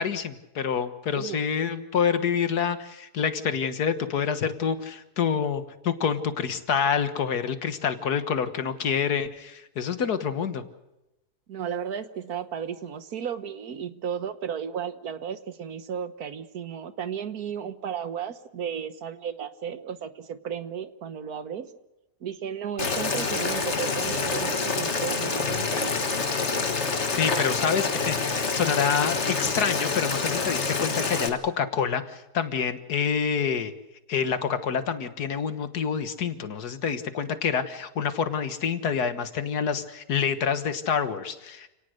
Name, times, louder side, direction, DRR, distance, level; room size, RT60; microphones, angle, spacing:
voice 1, 0.0-10.6 27.1-33.7 34.1-41.7, left 7 dB, 85° left, 10 dB, 1.9 m, -27 dB
voice 2, 11.5-21.7 22.2-26.2, right 8 dB, 75° right, 12 dB, 1.7 m, -34 dB
Boiling, 22.8-31.3, left 4 dB, 45° left, 2.0 m, -27 dB
29.0 x 18.5 x 6.6 m, 0.96 s
omnidirectional pair, 1.6 m